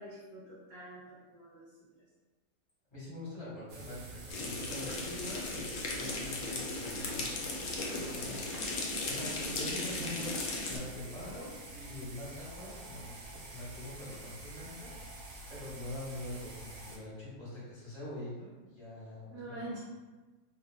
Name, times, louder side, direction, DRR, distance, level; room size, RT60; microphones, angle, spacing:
voice 1, 0.0-1.8 19.3-19.8, right 1 dB, 25° right, -11 dB, 0.6 m, -45 dB
voice 2, 2.9-10.3 10.6-15.2 15.5-19.8, left 1 dB, 25° left, -9 dB, 0.8 m, -44 dB
sound 1, 3.7-17.0, right 2 dB, 65° right, 0.8 m, -48 dB
Snow Falling In Scotland, 4.3-10.8, left 2 dB, 70° left, 0.9 m, -37 dB
2.3 x 2.1 x 3.2 m, 1.2 s
omnidirectional pair, 1.5 m